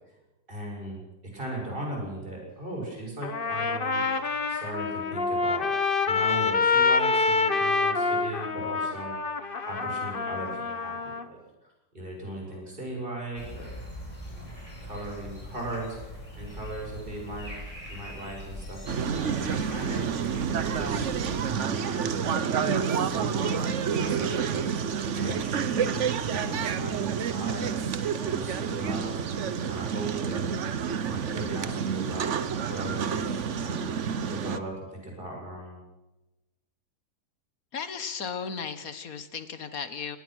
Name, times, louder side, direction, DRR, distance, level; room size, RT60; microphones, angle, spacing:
voice 1, 0.5-1.0 1.3-4.0 4.5-5.7 6.1-9.1 9.6-11.4 11.9-13.7 14.3-14.5 14.8-17.5 17.9-20.1 20.7-21.1 21.4-24.7 25.1-27.8 28.2-29.2 29.6-30.5 31.1-33.9 34.3-35.8, right 1 dB, 30° right, 0 dB, 7.5 m, -38 dB
Trumpet, 3.2-11.2, left 4 dB, 35° left, 1.2 m, -26 dB
sound 1, 13.4-21.6, left 1 dB, 20° left, 4.9 m, -42 dB
sound 2, 18.9-34.6, right 7 dB, 55° right, 1.1 m, -29 dB
voice 2, 37.7-40.2, left 6 dB, 60° left, 11 dB, 1.8 m, -35 dB
24.5 x 18.5 x 6.4 m, 1.0 s
omnidirectional pair, 1.7 m